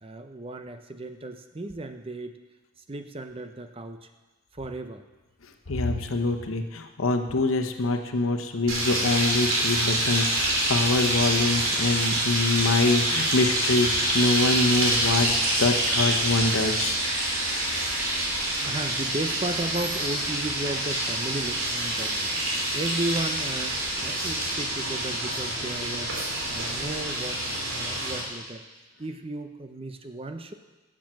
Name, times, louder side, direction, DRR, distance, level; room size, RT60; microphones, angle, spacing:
voice 1, 0.0-2.4 2.9-4.1 4.5-5.0 5.7-5.8 18.6-28.7 29.0-30.5, right 2 dB, 25° right, 8 dB, 0.7 m, -35 dB
voice 2, 5.7-17.0, left 2 dB, 85° left, 6 dB, 1.0 m, -25 dB
sound 1, 8.7-28.2, right 1 dB, 70° right, 3.4 m, -26 dB
12.0 x 7.5 x 7.6 m, 1.2 s
head